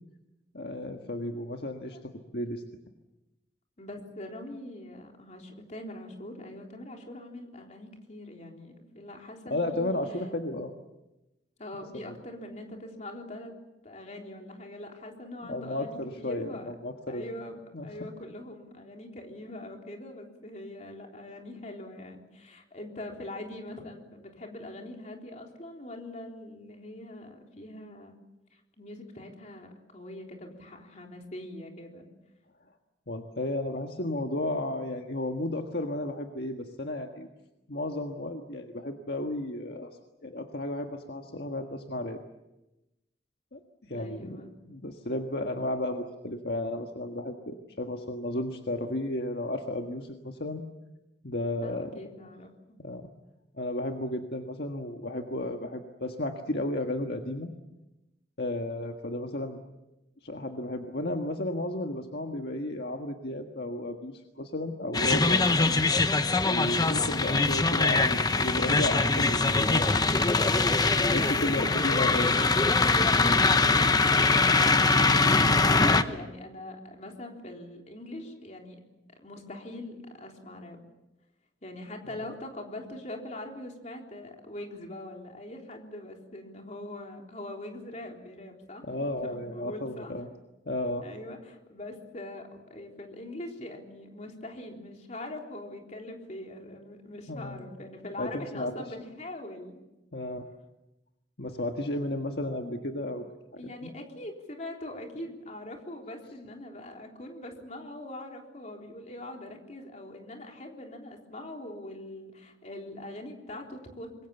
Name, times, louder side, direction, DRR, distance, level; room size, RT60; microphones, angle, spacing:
voice 1, 0.5-2.6 9.5-10.7 12.0-12.1 15.4-17.2 17.7-18.1 33.1-37.3 37.7-42.2 43.5-43.6 43.9-44.4 44.7-50.6 51.2-51.9 52.8-53.1 53.5-57.5 58.4-59.6 60.2-65.7 66.4-70.7 71.1-72.3 88.9-90.3 90.6-91.1 97.3-97.6 98.2-98.7 100.1-100.5 101.4-103.2 103.5-103.9, left 1 dB, 65° left, 3 dB, 1.6 m, -33 dB
voice 2, 3.8-10.0 11.6-13.5 13.8-16.7 17.1-28.1 28.8-32.1 43.9-44.5 51.6-52.6 70.8-72.0 73.1-78.8 79.2-80.8 81.6-88.8 89.2-90.1 91.0-99.8 103.6-114.1, left 1 dB, 40° left, 2 dB, 3.7 m, -42 dB
sound 1, 64.9-76.0, left 3 dB, 20° left, 0.9 m, -23 dB
26.5 x 22.5 x 7.1 m, 0.98 s
head